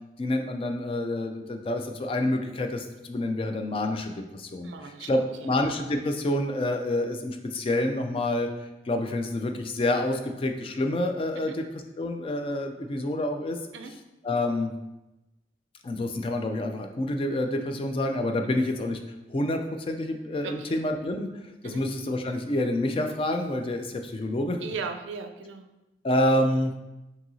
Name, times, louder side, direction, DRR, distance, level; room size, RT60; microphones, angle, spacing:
voice 1, 0.2-4.7 5.1-8.5 8.9-11.5 12.0-13.6 14.2-14.7 15.8-19.0 19.3-21.3 21.6-24.6 26.0-26.7, left 1 dB, 30° left, 5 dB, 0.3 m, -28 dB
voice 2, 4.6-5.5 11.4-11.6 13.7-13.9 18.4-18.6 20.4-20.8 21.6-21.8 24.6-25.7, right 5 dB, 80° right, 6 dB, 0.4 m, -38 dB
5.6 x 2.7 x 2.7 m, 0.99 s
head